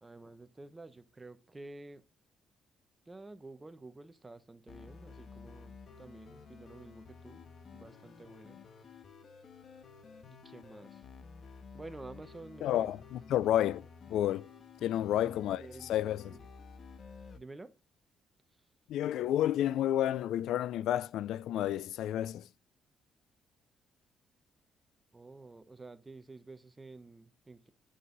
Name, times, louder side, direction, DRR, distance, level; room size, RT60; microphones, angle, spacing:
voice 1, 0.0-2.0 3.1-7.4 7.7-8.6 10.3-11.0 11.7-13.0 15.1-16.0 16.2-16.5 17.3-17.7 25.1-27.7, right 2 dB, 20° right, 0.9 m, -50 dB
sound 1, 4.7-17.4, left 5 dB, 55° left, 1.3 m, -52 dB
voice 2, 12.6-13.8 14.1-14.5 14.8-16.4 18.9-22.5, left 12 dB, 80° left, 0.3 m, -30 dB
8.5 x 5.5 x 3.9 m
cardioid pair, 90°, 0 cm